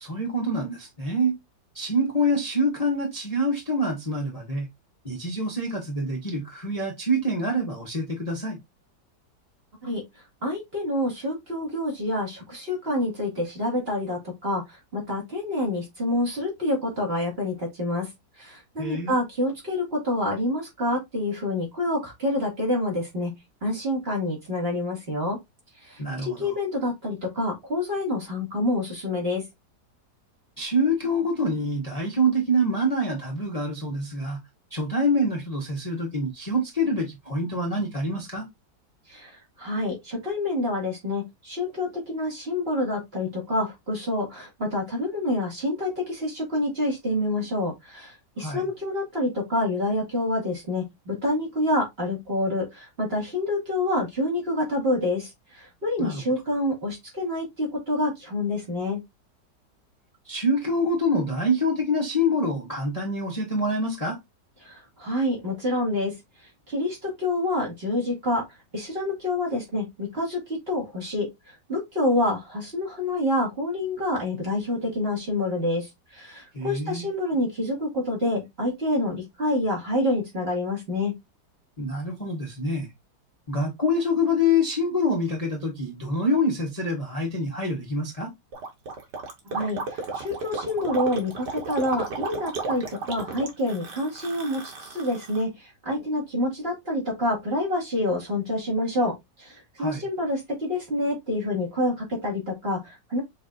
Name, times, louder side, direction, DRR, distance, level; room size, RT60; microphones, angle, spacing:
voice 1, 0.0-1.4 1.7-4.7 5.0-8.6 18.8-19.2 26.0-26.5 30.6-34.4 34.7-38.5 48.4-48.7 56.0-56.2 60.2-64.2 76.5-77.0 81.8-82.9 83.5-88.3 99.8-100.0, left 1 dB, 25° left, 1.2 m, -26 dB
voice 2, 10.4-18.1 18.4-23.3 23.6-25.4 25.8-29.4 39.1-59.0 64.6-66.1 66.7-68.4 68.7-81.1 89.5-103.2, left 1 dB, 35° right, 2.4 m, -27 dB
Gurgling, 88.5-95.4, right 3 dB, 75° right, 1.9 m, -33 dB
6.2 x 3.3 x 2.5 m
omnidirectional pair, 1.9 m